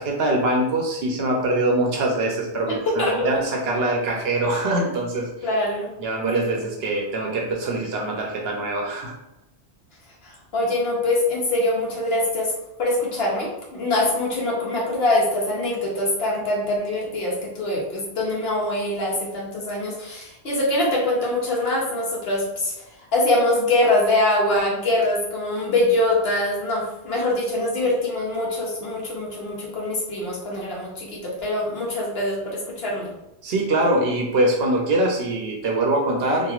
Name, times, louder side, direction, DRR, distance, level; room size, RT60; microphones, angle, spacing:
voice 1, 0.0-5.3 6.0-9.1 33.4-36.5, right 2 dB, 65° right, 0 dB, 0.7 m, -23 dB
voice 2, 2.9-3.3 5.4-5.9 6.3-6.6 10.2-12.5 12.8-22.7 23.1-33.1, left 1 dB, 65° left, -3 dB, 1.0 m, -23 dB
3.0 x 2.4 x 2.3 m, 0.90 s
omnidirectional pair, 1.2 m